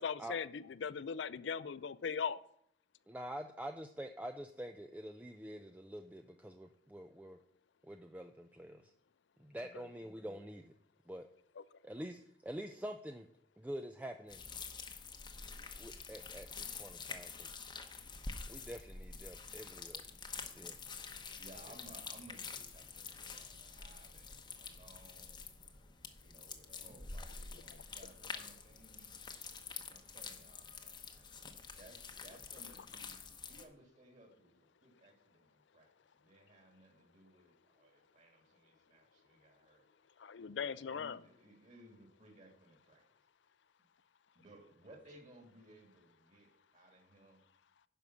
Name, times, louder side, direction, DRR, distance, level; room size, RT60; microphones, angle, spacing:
voice 1, 0.0-2.4 40.2-41.2, left 6 dB, 75° left, 16 dB, 0.5 m, -39 dB
voice 2, 3.1-7.4 7.8-8.9 9.4-10.7 11.1-11.3 11.8-13.3 13.6-14.4 15.8-17.6 18.5-20.0 20.4-20.8, equal, 10° right, 6 dB, 0.4 m, -46 dB
sound 1, 14.3-33.6, left 5 dB, 25° left, 0.9 m, -48 dB
voice 3, 21.4-25.5 26.2-29.1 29.8-31.3 31.7-39.9 40.6-43.1 44.3-47.4, right 1 dB, 40° right, 2 dB, 2.8 m, -60 dB
11.0 x 5.3 x 7.0 m, 0.68 s
head